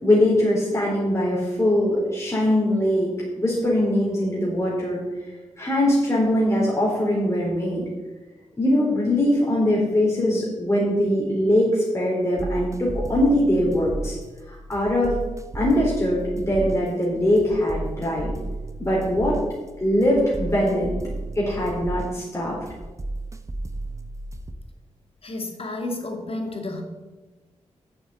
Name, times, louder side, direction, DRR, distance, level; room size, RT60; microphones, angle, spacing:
voice 1, 0.0-3.1 3.4-5.0 5.6-7.8 8.6-14.2 14.5-15.1 15.5-18.3 18.8-19.4 19.8-20.9 21.3-22.6, left 1 dB, 25° left, -5 dB, 4.2 m, -22 dB
sound 1, 12.4-24.5, right 2 dB, 25° right, 1.2 m, -34 dB
voice 2, 25.2-26.8, left 2 dB, 50° left, 3 dB, 2.6 m, -31 dB
8.7 x 7.4 x 8.0 m, 1.2 s
cardioid pair, 50°, 12 cm